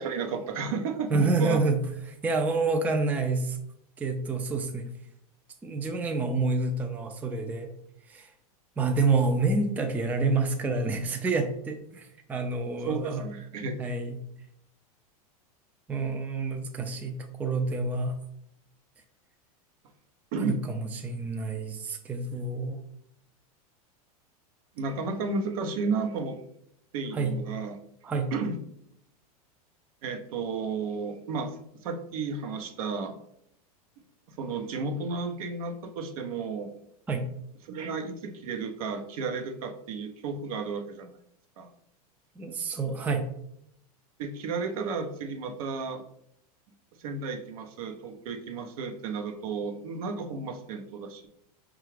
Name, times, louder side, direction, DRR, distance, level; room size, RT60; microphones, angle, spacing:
voice 1, 0.0-1.6 12.9-13.7 20.3-20.6 24.8-26.4 26.9-27.8 28.3-28.6 30.0-33.1 34.4-36.7 37.7-41.2 41.6-41.7 44.2-46.0 47.0-51.3, right 4 dB, 70° right, 5 dB, 0.7 m, -33 dB
voice 2, 1.1-3.6 4.0-4.9 5.6-7.7 8.1-8.3 8.8-13.2 13.8-14.2 15.9-18.2 20.4-22.8 27.1-27.4 28.0-28.3 37.1-37.3 42.4-43.3, right 3 dB, 10° right, 4 dB, 0.3 m, -28 dB
4.7 x 2.4 x 3.2 m, 0.73 s
hypercardioid pair, 120°, 19 cm